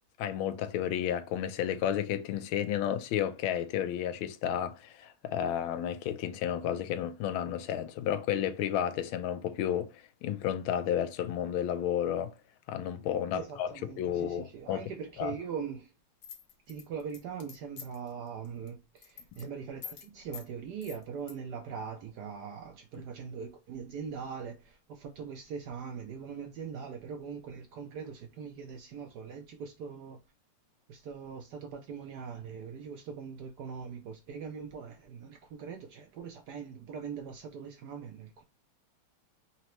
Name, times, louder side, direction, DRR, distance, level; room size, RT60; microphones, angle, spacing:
voice 1, 0.2-12.3 12.7-13.7 14.0-14.9 15.2-15.3, left 10 dB, 85° left, 1.4 m, -32 dB
voice 2, 13.3-15.9 16.7-30.2 30.9-38.4, right 6 dB, 70° right, 1.0 m, -41 dB
sound 1, 16.2-18.1 18.4-18.7 19.0-19.4 19.8-20.1 20.3-20.5 20.8-21.3, left 7 dB, 55° left, 1.4 m, -45 dB
4.2 x 2.9 x 3.0 m
omnidirectional pair, 2.3 m